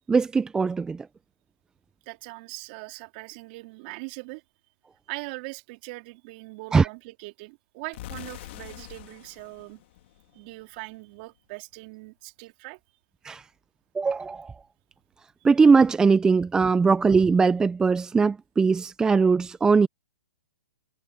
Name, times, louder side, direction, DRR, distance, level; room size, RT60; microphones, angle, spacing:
voice 1, 0.1-1.1 6.7-6.9 13.2-13.4 13.9-14.5 15.4-19.9, right 4 dB, 10° right, 0.6 m, -20 dB
voice 2, 2.0-4.4 5.1-9.8 10.3-12.8, right 25 dB, 40° right, 3.1 m, -41 dB
sound 1, 7.9-10.8, left 16 dB, 50° left, 3.7 m, -44 dB
hypercardioid pair, 135°, 8 cm